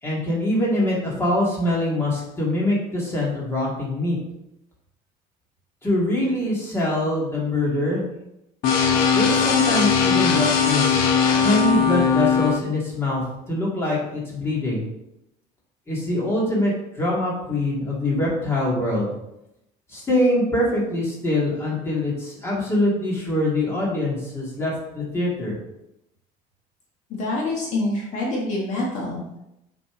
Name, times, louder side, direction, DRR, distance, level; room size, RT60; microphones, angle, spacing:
voice 1, 0.0-4.2 5.8-8.0 9.1-11.0 11.4-13.2 13.5-14.8 15.9-19.1 19.9-25.6, left 1 dB, 15° left, -5 dB, 2.1 m, -23 dB
sound 1, 8.6-12.6, left 6 dB, 75° left, 1.0 m, -19 dB
voice 2, 27.1-29.4, left 2 dB, 55° left, -2 dB, 1.5 m, -26 dB
7.0 x 5.4 x 3.8 m, 0.85 s
cardioid pair, 170°, 15 cm